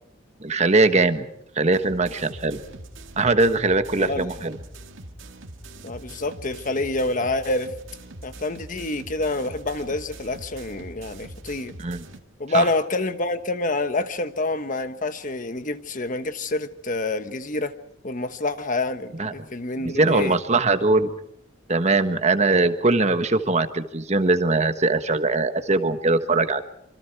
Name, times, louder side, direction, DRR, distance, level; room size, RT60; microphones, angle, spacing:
voice 1, 0.4-1.3 1.5-2.6 3.2-4.6 11.8-12.0 12.5-12.7 19.2-19.3 19.8-21.1 21.7-26.6, right 3 dB, 35° right, 9 dB, 1.3 m, -21 dB
sound 1, 1.7-12.2, right 1 dB, 80° right, 2.0 m, -42 dB
voice 2, 4.0-4.3 5.8-7.7 8.2-11.7 12.4-17.7 18.0-20.4, left 2 dB, 45° left, 10 dB, 1.3 m, -27 dB
26.5 x 25.5 x 4.7 m, 0.76 s
head